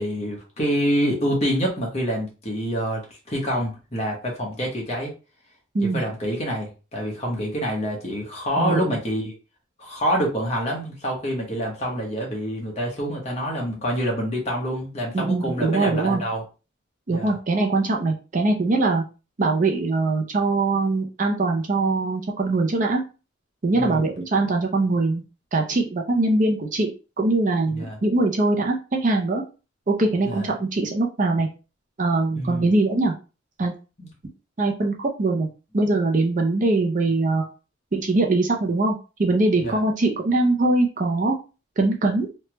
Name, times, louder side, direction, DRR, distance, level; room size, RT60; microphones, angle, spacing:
voice 1, 0.0-3.0 3.3-5.1 5.8-9.3 9.8-16.4 17.1-17.4 23.7-24.0 27.8-28.0 30.2-30.5 32.4-32.7 34.0-34.1 39.6-39.8, equal, 35° left, -1 dB, 1.0 m, -26 dB
voice 2, 8.6-9.0 15.1-16.2 17.1-19.0 19.4-23.0 23.6-25.2 25.5-26.9 27.2-29.4 29.9-31.5 32.0-33.1 33.6-33.7 34.6-35.5 35.7-37.5 37.9-41.4 41.8-42.3, right 2 dB, 40° right, 2 dB, 0.5 m, -22 dB
3.2 x 2.2 x 3.0 m, 0.32 s
head